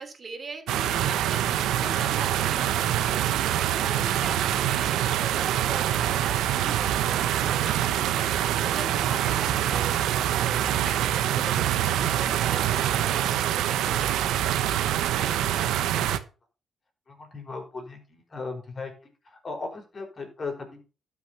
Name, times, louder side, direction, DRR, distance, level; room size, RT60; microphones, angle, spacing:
voice 1, 0.0-3.3 3.7-14.5, right 4 dB, 35° right, 5 dB, 3.2 m, -41 dB
sound 1, 0.7-16.2, right 11 dB, 85° right, 1.0 m, -25 dB
voice 2, 17.1-18.9 19.2-20.8, left 3 dB, 35° left, 3 dB, 5.0 m, -37 dB
12.0 x 6.0 x 5.9 m, 0.34 s
cardioid pair, 90°, 0 cm